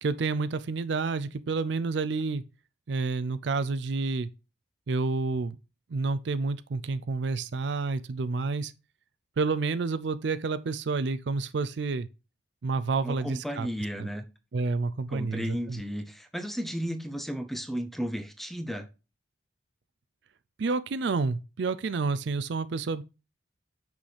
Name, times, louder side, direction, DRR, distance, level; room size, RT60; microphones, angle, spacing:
voice 1, 0.0-2.4 2.9-4.3 4.9-5.6 5.9-8.7 9.4-12.1 12.6-13.7 14.0-14.1 14.5-15.8 20.6-23.0, right 4 dB, 65° right, 0.4 m, -29 dB
voice 2, 13.0-14.2 15.1-18.9, equal, ahead, 0.6 m, -34 dB
6.1 x 5.9 x 3.3 m
head